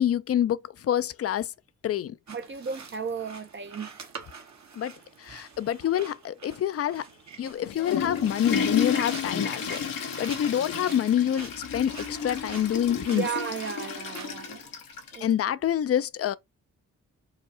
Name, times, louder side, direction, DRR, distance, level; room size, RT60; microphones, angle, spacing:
voice 1, 0.0-1.5 1.8-2.2 4.8-4.9 5.2-7.1 7.4-13.3 15.1-16.3, left 10 dB, 45° left, 0.5 m, -27 dB
voice 2, 2.3-3.9 10.6-10.7 13.1-14.7 15.1-15.3, right 6 dB, 35° right, 0.6 m, -34 dB
sound 1, 2.3-14.3, right 5 dB, 55° right, 1.0 m, -47 dB
Water / Toilet flush, 7.5-15.3, left 6 dB, 80° left, 0.9 m, -32 dB
4.8 x 2.0 x 2.7 m
supercardioid pair, 45°, 34 cm